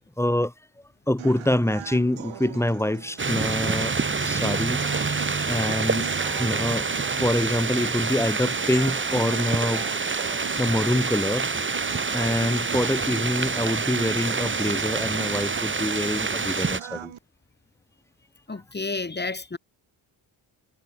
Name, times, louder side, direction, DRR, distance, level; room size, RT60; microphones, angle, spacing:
voice 1, 0.2-0.5 1.1-3.9 4.2-4.8 5.1-6.1 6.3-9.9 10.6-11.5 12.1-17.1, left 1 dB, 5° left, 6.4 m, -25 dB
sound 1, 1.2-17.2, right 10 dB, 75° right, 7.6 m, -40 dB
sound 2, 3.2-16.8, right 4 dB, 25° right, 2.1 m, -27 dB
voice 2, 4.9-5.7 6.2-6.3 18.5-19.6, left 3 dB, 20° left, 3.5 m, -33 dB
wide cardioid pair, 130°, 48 cm